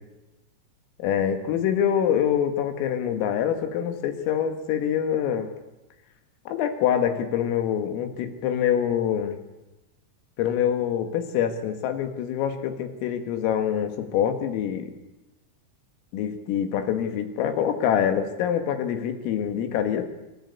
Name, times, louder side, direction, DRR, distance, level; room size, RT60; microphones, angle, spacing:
voice 1, 1.0-5.5 6.5-9.4 10.4-14.9 16.1-20.1, left 9 dB, 90° left, 7 dB, 4.5 m, -25 dB
26.5 x 14.0 x 8.3 m, 1.0 s
omnidirectional pair, 5.8 m